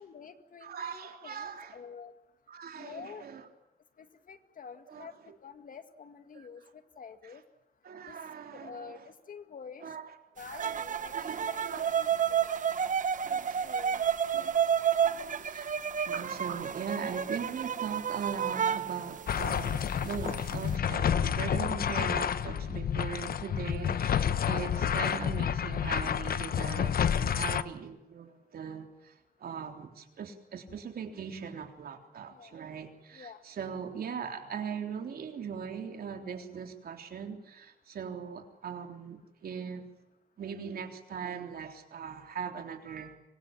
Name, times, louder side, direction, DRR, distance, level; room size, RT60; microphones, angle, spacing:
voice 1, 0.0-2.1 2.8-3.3 4.0-5.1 5.4-6.6 7.0-7.4 8.1-8.2 8.5-9.0 9.3-9.8 10.4-11.1 11.4-12.1 12.4-12.5 13.6-14.0 32.3-32.6 33.1-33.4, left 6 dB, 65° left, 9 dB, 2.2 m, -47 dB
voice 2, 0.6-1.8 2.5-3.5 4.9-5.4 6.3-6.5 7.8-9.0 9.8-10.1 10.5-10.8 11.1-12.0 12.6-13.7 14.3-14.5 15.0-39.9 40.4-43.2, right 6 dB, 85° right, 5 dB, 3.6 m, -40 dB
sound 1, 10.6-19.9 20.3-20.7, right 8 dB, 55° right, 1.0 m, -30 dB
sound 2, 19.3-27.6, left 8 dB, 80° left, 1.1 m, -29 dB
25.5 x 23.0 x 7.4 m, 0.93 s
wide cardioid pair, 135°, 15 cm